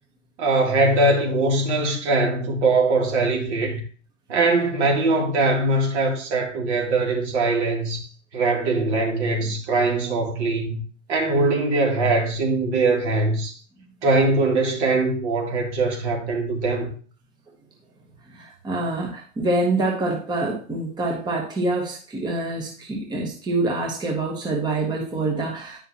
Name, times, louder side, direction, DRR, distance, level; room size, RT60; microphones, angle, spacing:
voice 1, 0.4-3.8 4.3-8.1 8.3-10.8 11.1-13.5 14.0-16.9, right 2 dB, 55° right, 2.9 m, -21 dB
voice 2, 18.3-25.8, right 2 dB, 10° right, 1.1 m, -26 dB
9.9 x 5.6 x 2.8 m
hypercardioid pair, 120°, 40 cm